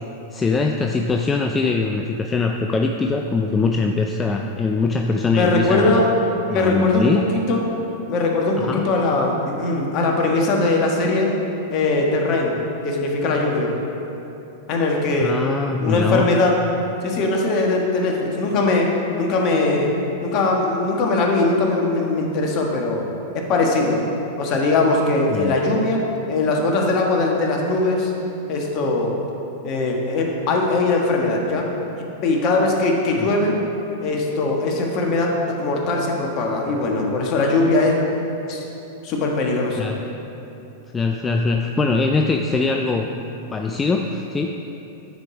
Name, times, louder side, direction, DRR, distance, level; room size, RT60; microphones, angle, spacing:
voice 1, 0.3-6.0 6.5-7.3 8.6-8.8 15.2-16.3 25.3-25.6 33.2-33.3 39.8-40.0 40.9-43.1 43.5-44.5, left 4 dB, 20° left, 3 dB, 0.4 m, -22 dB
voice 2, 5.3-6.1 6.5-7.6 8.1-11.3 11.7-12.6 12.8-13.7 14.7-15.3 15.8-16.5 17.0-18.9 19.2-19.9 20.2-23.0 23.3-24.0 24.4-28.1 28.5-29.1 29.6-31.7 32.2-33.6 34.0-38.0 38.5-38.6 39.0-39.9, left 2 dB, 45° left, 0 dB, 1.4 m, -20 dB
9.2 x 5.0 x 4.9 m, 2.9 s
hypercardioid pair, 105°, 0 cm